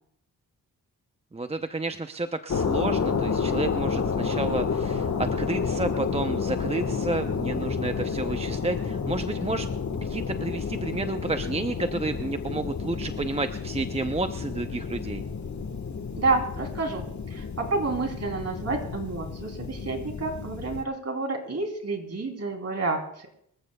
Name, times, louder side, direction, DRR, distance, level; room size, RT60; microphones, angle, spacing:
voice 1, 1.3-9.7 10.0-15.2, right 2 dB, 15° right, 8 dB, 0.6 m, -31 dB
sound 1, 2.5-20.8, left 5 dB, 50° left, 1.4 m, -30 dB
voice 2, 16.2-23.3, right 3 dB, 45° right, 3 dB, 3.2 m, -29 dB
25.0 x 14.5 x 2.3 m, 0.69 s
cardioid pair, 80°, 37 cm